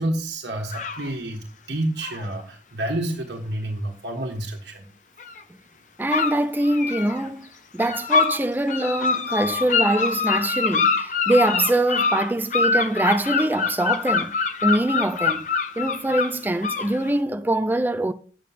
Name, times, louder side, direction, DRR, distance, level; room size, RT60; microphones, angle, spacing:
voice 1, 0.0-4.9, right 1 dB, 80° right, 1.4 m, -29 dB
sound 1, 0.7-1.1 2.0-2.2 5.2-5.4 6.1-7.2 7.8-8.4 8.7-17.1, left 5 dB, 45° left, 0.7 m, -24 dB
voice 2, 6.0-7.5 7.7-15.5 15.8-18.1, right 1 dB, 10° right, 0.4 m, -23 dB
8.3 x 7.3 x 4.2 m
head